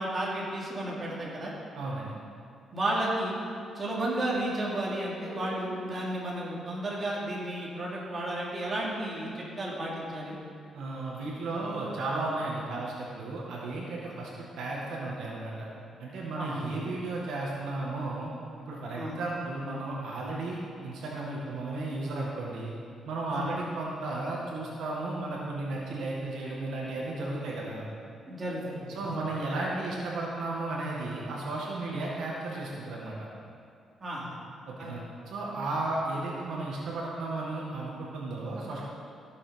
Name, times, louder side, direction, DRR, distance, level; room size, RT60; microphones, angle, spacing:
voice 1, 0.0-1.5 2.7-3.4 3.7-10.4 16.3-16.6 19.0-19.2 23.3-23.5 28.2-29.2 34.0-34.3 34.8-34.9, right 1 dB, 30° right, -5 dB, 3.0 m, -33 dB
voice 2, 1.8-2.2 10.7-14.3 14.6-15.7 16.0-18.3 18.6-22.7 23.1-27.9 28.9-33.2 34.7-38.8, right 2 dB, 80° right, -4 dB, 1.9 m, -34 dB
15.0 x 7.1 x 5.2 m, 2.4 s
cardioid pair, 105°, 0 cm